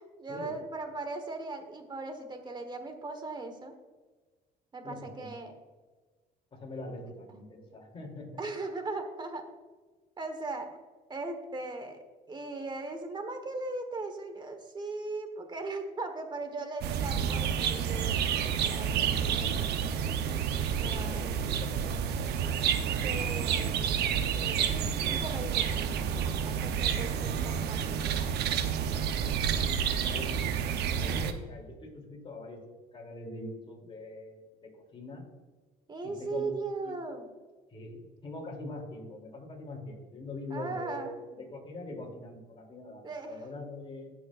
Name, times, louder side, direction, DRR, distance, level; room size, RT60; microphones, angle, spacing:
voice 1, 0.0-3.8 4.7-5.5 8.4-9.5 10.2-10.7 11.1-19.6 20.8-21.2 23.0-24.0 24.3-28.4 35.9-37.3 40.5-41.1 43.0-43.5, right 3 dB, 25° right, 7 dB, 1.4 m, -39 dB
voice 2, 4.8-5.3 6.5-8.4 20.5-22.8 28.9-29.2 29.5-30.3 30.9-32.6 32.9-35.3 36.0-36.5 36.8-36.9 37.7-44.1, left 2 dB, 30° left, 0 dB, 3.0 m, -43 dB
sound 1, 16.8-31.3, right 8 dB, 75° right, 0.8 m, -29 dB
17.0 x 6.3 x 2.5 m, 1.3 s
cardioid pair, 110°, 17 cm